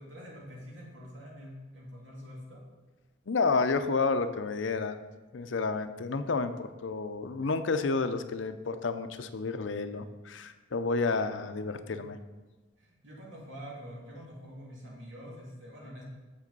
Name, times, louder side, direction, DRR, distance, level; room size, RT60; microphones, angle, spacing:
voice 1, 0.0-2.6 12.8-16.0, equal, 75° right, -3 dB, 2.5 m, -46 dB
voice 2, 3.3-5.0 5.3-12.2, left 4 dB, 70° left, 10 dB, 0.6 m, -30 dB
7.4 x 7.0 x 5.3 m, 1.2 s
head